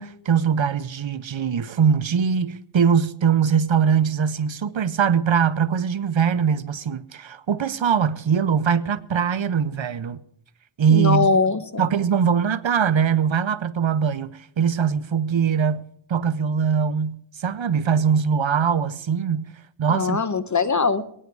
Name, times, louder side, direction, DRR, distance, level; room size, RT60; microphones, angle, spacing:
voice 1, 0.0-10.2 10.8-11.3 11.8-19.5 19.8-20.2, right 7 dB, 75° right, 0.8 m, -22 dB
voice 2, 10.9-11.8 19.9-21.0, left 4 dB, 40° left, 1.0 m, -21 dB
22.5 x 9.6 x 4.7 m
wide cardioid pair, 60°, 47 cm